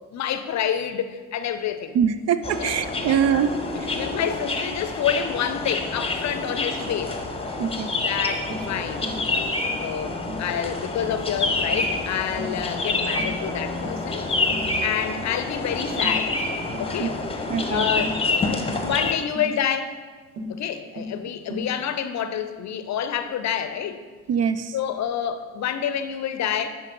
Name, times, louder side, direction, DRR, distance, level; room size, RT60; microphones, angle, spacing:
voice 1, 0.0-2.0 2.6-3.4 3.9-7.2 8.0-9.5 9.8-14.3 14.8-16.4 16.8-17.2 17.7-19.9 20.5-24.0 24.7-26.7, left 8 dB, 45° left, 10 dB, 0.6 m, -28 dB
voice 2, 1.9-3.5 3.8-3.9 7.6-7.9 17.0-17.1 17.5-17.8 24.3-24.7, right 8 dB, 40° right, 12 dB, 0.4 m, -23 dB
sound 1, 2.4-19.2, left 3 dB, 15° left, 0.9 m, -27 dB
Tap, 6.8-7.0 7.6-7.8 8.5-8.7 9.0-9.3 9.7-9.9 10.3-10.5 11.0-11.2 11.7-12.0 12.4-12.6 13.2-13.4 13.8-14.1 14.5-14.7 15.2-15.4 16.0-16.3 16.7-16.9 18.0-18.2 19.3-19.6 20.4-20.6 21.0-21.2 21.5-21.8, left 1 dB, 80° right, 1.0 m, -35 dB
10.5 x 3.8 x 3.9 m, 1.4 s
hypercardioid pair, 50°, 39 cm